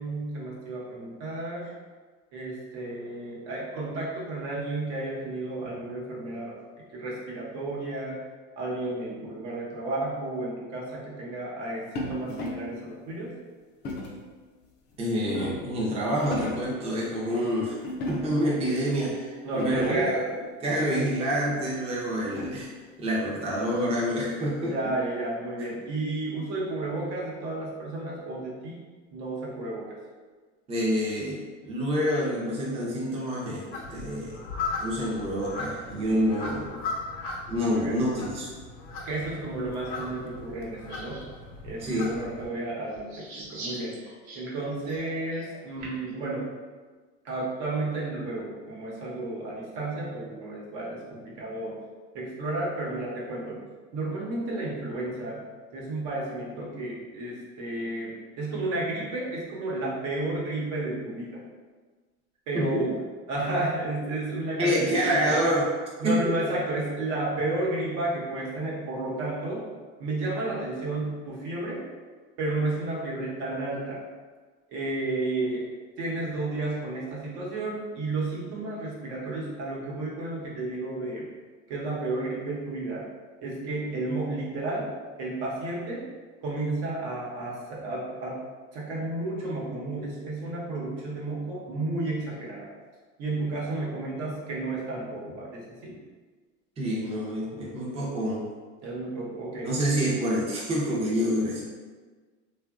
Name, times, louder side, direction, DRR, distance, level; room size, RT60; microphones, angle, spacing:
voice 1, 0.0-1.7 2.3-6.6 6.9-8.2 8.6-13.3 19.4-20.2 24.6-28.8 29.1-30.0 37.5-38.0 39.0-41.3 41.6-44.1 44.3-46.5 47.2-51.8 52.1-53.6 53.9-55.4 55.7-61.4 62.5-62.9 63.3-65.4 66.0-69.7 70.0-71.8 72.4-74.0 74.7-75.6 76.0-81.3 81.7-83.1 83.4-84.9 85.2-86.0 86.4-88.4 88.7-92.7 93.2-96.0 98.8-99.7, right 2 dB, 65° right, -4 dB, 1.0 m, -32 dB
sound 1, 12.0-12.8 13.8-14.3 14.9-15.8 16.1-16.8 17.8-18.5 19.1-19.2 19.5-20.2 21.6-22.7, left 1 dB, 30° left, 0.5 m, -35 dB
voice 2, 15.0-17.8 18.1-20.2 20.6-22.7 23.0-24.7 30.7-33.6 33.9-34.3 34.8-36.7 37.5-38.5 41.8-42.1 62.5-62.7 64.6-65.6 66.0-66.4 96.8-98.5 99.6-101.6, equal, 15° right, -5 dB, 0.6 m, -27 dB
sound 2, 33.7-42.5, left 3 dB, 60° left, 0.7 m, -37 dB
sound 3, 40.9-41.2 41.8-42.0 42.9-46.1, right 2 dB, 85° right, 0.9 m, -43 dB
2.8 x 2.4 x 2.3 m, 1.4 s
supercardioid pair, 105°, 36 cm